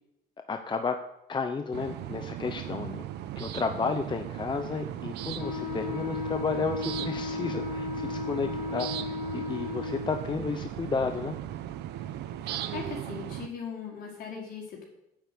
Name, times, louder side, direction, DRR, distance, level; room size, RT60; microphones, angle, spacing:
voice 1, 0.5-1.0 1.3-3.0 3.4-11.4, left 5 dB, 25° left, 7 dB, 0.8 m, -32 dB
sound 1, 1.7-13.5, right 12 dB, 80° right, 0.9 m, -37 dB
Wind instrument woodwind instrument, 5.4-10.2, left 5 dB, 80° left, 3.7 m, -35 dB
voice 2, 12.4-14.8, left 6 dB, 65° left, -1 dB, 4.7 m, -39 dB
9.6 x 8.1 x 8.5 m, 0.85 s
cardioid pair, 110°, 17 cm